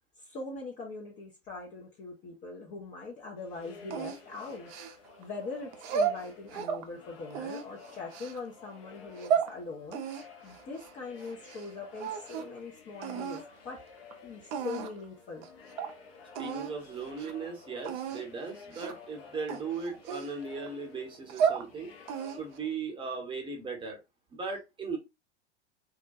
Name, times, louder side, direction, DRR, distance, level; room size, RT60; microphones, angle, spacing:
voice 1, 0.2-4.7 5.2-10.0 10.4-13.8 14.2-15.5, left 3 dB, 25° left, 0.5 m, -42 dB
sound 1, 3.4-22.8, left 4 dB, 55° left, 0.7 m, -53 dB
sound 2, 3.9-5.2 5.7-6.9 7.3-8.4 9.0-9.5 9.9-11.7 11.9-12.6 13.0-13.4 14.1-14.2 14.5-15.0 15.4-15.5 15.8-15.9 16.3-16.7 17.1-17.3 17.8-18.2 18.7-19.1 19.5-20.7 21.1-21.7 22.1-22.6, right 7 dB, 35° right, 0.4 m, -33 dB
voice 2, 16.4-21.9 22.3-24.0 24.3-25.0, right 4 dB, 15° right, 0.8 m, -37 dB
2.3 x 2.1 x 2.6 m
figure-of-eight pair, 95°, 35 cm